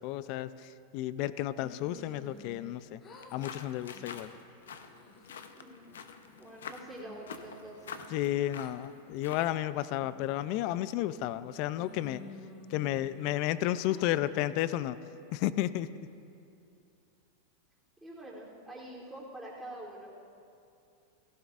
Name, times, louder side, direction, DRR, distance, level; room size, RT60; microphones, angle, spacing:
voice 1, 0.0-3.0 3.3-4.3 8.1-12.2 12.7-15.0 15.3-16.1, left 13 dB, 50° left, 15 dB, 0.4 m, -32 dB
sound 1, 1.6-2.7 3.0-3.5 3.9-4.3 4.8-5.4 5.9-6.6 7.0-8.7 9.3-9.4 10.0-10.4 11.0-11.5 11.8-13.4 13.9-14.5, left 2 dB, 30° left, 1.2 m, -52 dB
sound 2, 1.9-3.8, left 5 dB, 75° left, 3.0 m, -62 dB
sound 3, 3.1-9.6, left 6 dB, 90° left, 0.7 m, -47 dB
voice 2, 5.5-5.9 6.4-8.0 18.0-20.2, right 1 dB, 5° right, -6 dB, 3.1 m, -46 dB
16.5 x 15.0 x 2.5 m, 2.6 s
hypercardioid pair, 120°, 0 cm